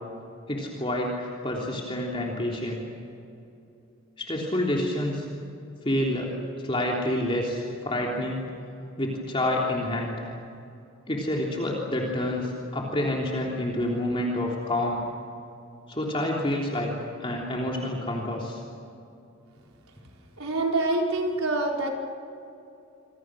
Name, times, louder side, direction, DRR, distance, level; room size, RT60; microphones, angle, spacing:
voice 1, 0.5-2.8 4.2-5.3 5.8-6.3 6.6-8.4 9.0-10.2 11.1-15.0 15.9-16.9 17.2-18.6, left 1 dB, 25° left, -2 dB, 3.3 m, -28 dB
voice 2, 20.4-21.9, right 2 dB, 85° right, 0 dB, 4.6 m, -26 dB
27.0 x 26.5 x 6.4 m, 2.7 s
head